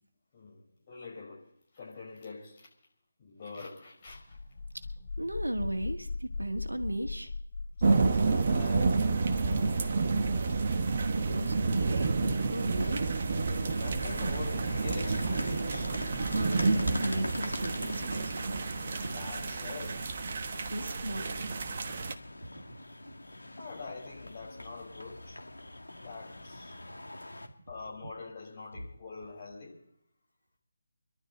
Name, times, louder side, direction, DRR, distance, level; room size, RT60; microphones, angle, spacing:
voice 1, 0.3-2.7 3.2-4.4 7.7-10.6 13.6-15.9 18.9-19.9 23.6-25.4 26.0-26.8 27.7-29.8, left 4 dB, 25° left, 5.5 m, -45 dB
sound 1, 4.0-17.4, left 3 dB, 50° left, 3.8 m, -41 dB
voice 2, 5.2-7.3 11.0-13.1 16.3-18.6 19.0-19.1 20.3-21.4 22.0-22.1 22.4-22.8, right 1 dB, 75° right, 2.0 m, -36 dB
sound 2, 7.8-22.1, right 4 dB, 35° right, 1.1 m, -30 dB
sound 3, 12.7-27.5, left 1 dB, 70° left, 2.0 m, -43 dB
26.0 x 12.0 x 4.4 m
figure-of-eight pair, 155°, 0 cm